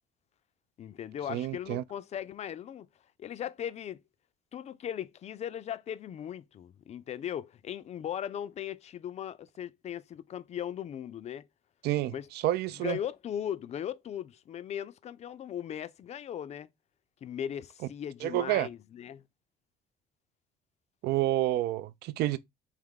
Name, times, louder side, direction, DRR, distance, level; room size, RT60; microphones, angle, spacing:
voice 1, 0.8-2.9 3.2-4.0 4.5-11.5 12.1-12.3 12.8-16.7 17.2-19.2, left 9 dB, 40° left, 0.4 m, -38 dB
voice 2, 1.3-1.8 11.8-13.0 18.2-18.7 21.0-22.4, right 14 dB, 75° right, 0.4 m, -29 dB
3.5 x 2.9 x 3.7 m
cardioid pair, 110°, 17 cm